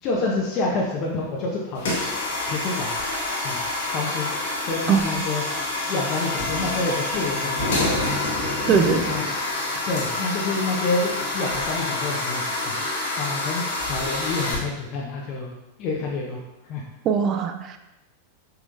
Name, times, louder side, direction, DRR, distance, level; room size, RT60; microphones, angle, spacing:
voice 1, 0.0-1.9 2.5-2.9 3.4-3.6 3.9-4.3 4.6-5.4 5.9-8.0 8.7-9.2 9.9-12.8 13.2-15.5 15.8-16.8, left 3 dB, 40° left, -3 dB, 1.0 m, -28 dB
sound 1, 1.8-14.5, left 2 dB, 60° left, 1.8 m, -27 dB
voice 2, 8.7-9.0 17.0-17.8, right 7 dB, 35° right, 7 dB, 0.6 m, -20 dB
6.7 x 6.1 x 2.6 m, 0.95 s
figure-of-eight pair, 90°, 0 cm